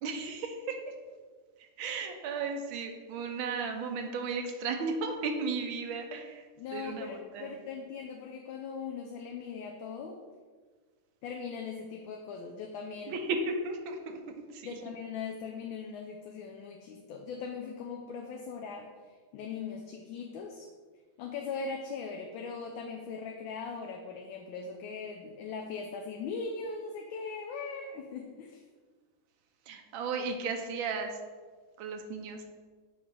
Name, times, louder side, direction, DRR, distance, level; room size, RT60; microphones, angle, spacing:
voice 1, 0.0-0.8 1.6-6.5 6.7-7.7 13.1-14.7 29.7-31.2 31.8-32.4, right 4 dB, 75° right, 4 dB, 1.5 m, -35 dB
voice 2, 6.6-10.2 11.2-13.2 14.6-20.7 21.2-28.6, left 5 dB, 75° left, 3 dB, 1.4 m, -40 dB
7.8 x 3.2 x 5.5 m, 1.5 s
omnidirectional pair, 2.3 m